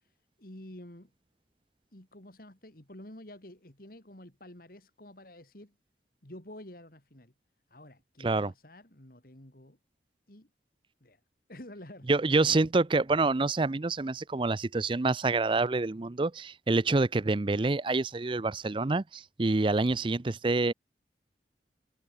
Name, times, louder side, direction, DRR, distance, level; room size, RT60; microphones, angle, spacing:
voice 1, 0.1-1.1 1.9-5.8 6.2-7.3 7.7-9.8 10.3-10.5 11.0-11.2 11.5-12.7, left 1 dB, 50° left, 3.3 m, -49 dB
voice 2, 12.1-20.7, right 3 dB, 30° right, 0.5 m, -27 dB
head